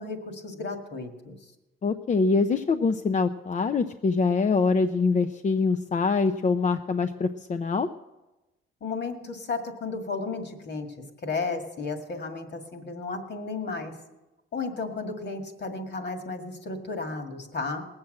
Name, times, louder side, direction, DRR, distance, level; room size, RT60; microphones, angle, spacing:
voice 1, 0.0-1.4 8.8-10.9 11.2-13.9 14.5-17.8, left 4 dB, 55° left, 5 dB, 1.9 m, -33 dB
voice 2, 1.8-7.9, left 4 dB, 35° left, 7 dB, 0.5 m, -24 dB
19.0 x 7.3 x 7.6 m, 1.1 s
cardioid pair, 110°, 21 cm